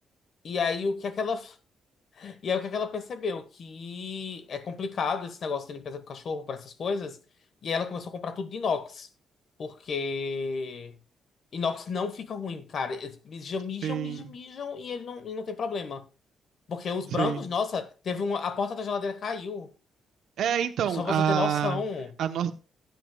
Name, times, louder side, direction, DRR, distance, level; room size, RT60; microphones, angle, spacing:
voice 1, 0.4-1.5 2.2-7.2 7.6-9.1 9.6-11.0 11.5-16.0 16.7-19.7 20.9-22.1, left 5 dB, 50° left, 1.2 m, -32 dB
voice 2, 13.8-14.3 17.1-17.4 20.4-21.8 22.2-22.5, right 9 dB, 70° right, 0.8 m, -27 dB
15.5 x 9.4 x 2.2 m
cardioid pair, 145°, 0 cm